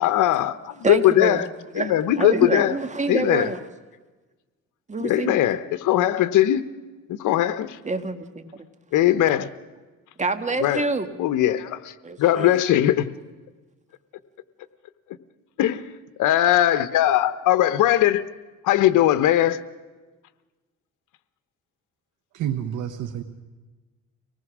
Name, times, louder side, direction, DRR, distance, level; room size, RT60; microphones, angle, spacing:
voice 1, 0.0-1.5 1.7-2.8 3.1-3.5 5.0-6.6 7.1-7.8 8.9-9.5 10.6-10.8 11.2-11.9 12.2-13.1 15.6-15.9 16.2-18.2 18.6-19.6, left 13 dB, 85° left, 1.0 m, -20 dB
voice 2, 0.8-1.4 1.7-3.6 4.9-5.4 7.8-8.5 10.2-11.1 12.0-12.7, right 3 dB, 25° right, 1.8 m, -27 dB
voice 3, 22.3-23.2, right 10 dB, 85° right, 1.2 m, -29 dB
24.5 x 18.5 x 6.2 m
cardioid pair, 90°, 30 cm